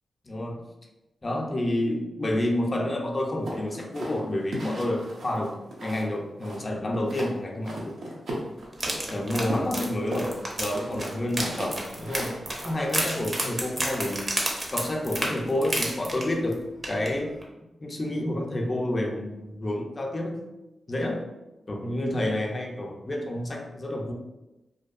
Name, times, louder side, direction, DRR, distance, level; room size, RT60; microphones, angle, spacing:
voice 1, 0.2-0.6 1.2-8.0 9.1-14.3 14.7-17.3 17.8-20.5 20.9-21.3 21.7-24.1, left 1 dB, 35° left, 1 dB, 0.4 m, -29 dB
sound 1, 3.5-6.1 6.4-7.3 7.6-9.0 9.5-13.3, right 1 dB, 85° right, 0.6 m, -36 dB
sound 2, 8.7-16.5 16.8-17.1 17.4-17.5, right 1 dB, 30° right, 0.5 m, -31 dB
2.6 x 2.2 x 2.4 m, 1.0 s
cardioid pair, 80°, 0 cm